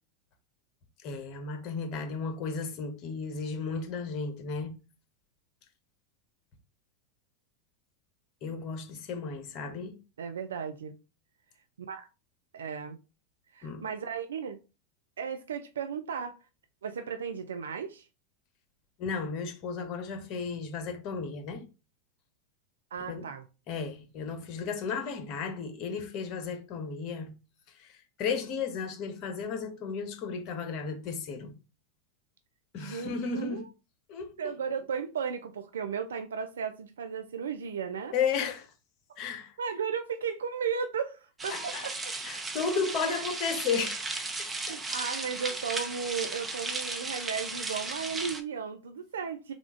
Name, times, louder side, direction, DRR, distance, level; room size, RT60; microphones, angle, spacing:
voice 1, 1.0-4.7 8.4-10.0 13.6-13.9 19.0-21.7 23.1-23.2 23.7-27.3 27.8-27.9 28.2-31.5 32.7-33.6 34.1-34.5 38.1-38.7 39.2-39.5 41.5-41.9 42.2-44.1 44.4-44.8, left 5 dB, 50° left, 0.9 m, -34 dB
voice 2, 10.2-10.9 11.9-12.1 12.5-13.0 13.5-14.6 15.2-16.3 16.8-18.1 22.9-23.4 32.8-33.7 34.4-38.1 39.6-42.1 43.1-43.2 44.7-49.5, right 6 dB, 75° right, 0.3 m, -35 dB
sound 1, 41.4-48.4, right 3 dB, 20° right, 0.8 m, -35 dB
3.5 x 2.4 x 3.6 m
hypercardioid pair, 90°, 0 cm